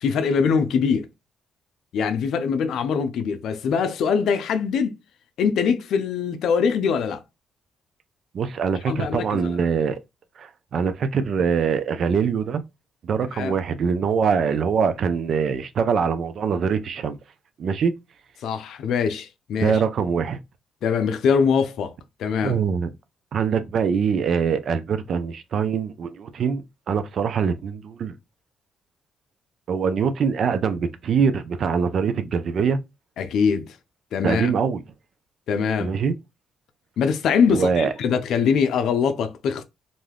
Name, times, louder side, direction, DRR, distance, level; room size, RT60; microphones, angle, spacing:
voice 1, 0.0-1.1 1.9-4.9 5.4-7.2 8.9-9.6 13.3-13.5 18.4-19.8 20.8-21.9 22.2-22.6 33.2-33.8 34.1-34.5 35.5-35.9 37.0-39.6, left 6 dB, 75° left, 0.5 m, -23 dB
voice 2, 8.3-10.0 10.4-12.6 13.0-17.2 17.6-17.9 19.6-20.4 22.4-22.9 23.3-28.1 29.7-32.8 34.2-34.8 35.8-36.1 37.5-37.9, right 6 dB, 60° right, 0.4 m, -23 dB
2.6 x 2.3 x 3.3 m
cardioid pair, 90°, 0 cm